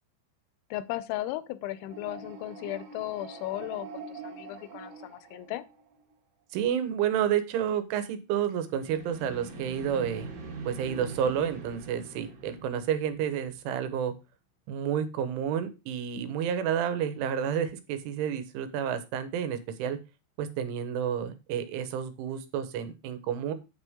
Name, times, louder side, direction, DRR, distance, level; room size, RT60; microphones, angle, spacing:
voice 1, 0.7-5.6, left 15 dB, 80° left, 15 dB, 3.0 m, -36 dB
sound 1, 1.7-6.1 8.7-13.6, right 4 dB, 50° right, 3.1 m, -44 dB
voice 2, 6.5-10.3 10.7-14.1 14.7-20.0 20.4-23.5, right 9 dB, 85° right, 11 dB, 3.6 m, -30 dB
9.2 x 8.3 x 3.6 m, 0.26 s
omnidirectional pair, 5.4 m